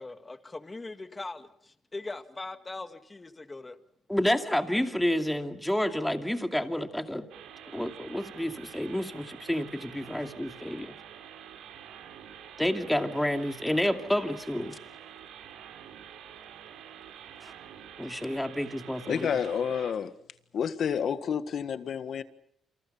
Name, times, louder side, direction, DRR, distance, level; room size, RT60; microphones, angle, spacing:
voice 1, 0.0-3.8, left 3 dB, 20° left, 2.0 m, -41 dB
voice 2, 4.1-7.2 7.7-10.9 12.6-14.8 17.4-17.5 18.0-19.3, left 1 dB, 5° left, 2.5 m, -29 dB
sound 1, 7.3-19.9, right 9 dB, 85° right, 3.5 m, -47 dB
voice 3, 19.1-20.1 20.5-22.2, left 7 dB, 60° left, 1.6 m, -29 dB
28.5 x 27.5 x 5.8 m
cardioid pair, 90°, 0 cm